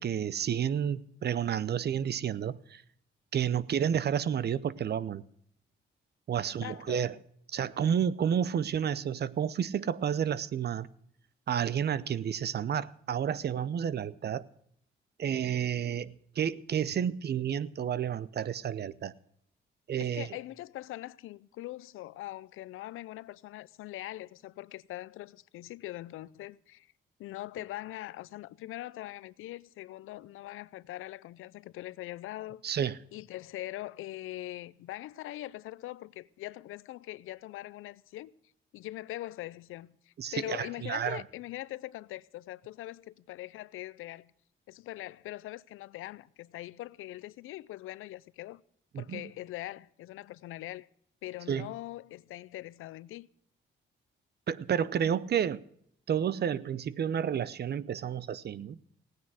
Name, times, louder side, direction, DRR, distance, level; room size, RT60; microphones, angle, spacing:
voice 1, 0.0-2.8 3.3-5.2 6.3-7.1 7.5-10.9 11.5-14.5 15.2-19.1 19.9-20.3 32.6-33.0 40.2-41.2 48.9-49.2 51.5-51.7 54.5-55.6 56.1-58.8, right 8 dB, 50° right, 0.7 m, -30 dB
voice 2, 6.6-7.1 20.0-26.9 27.2-32.6 33.1-38.3 38.7-44.3 44.7-48.6 49.0-50.9 51.2-53.3, left 15 dB, 85° left, 0.5 m, -42 dB
16.5 x 9.5 x 6.2 m
cardioid pair, 85°, 21 cm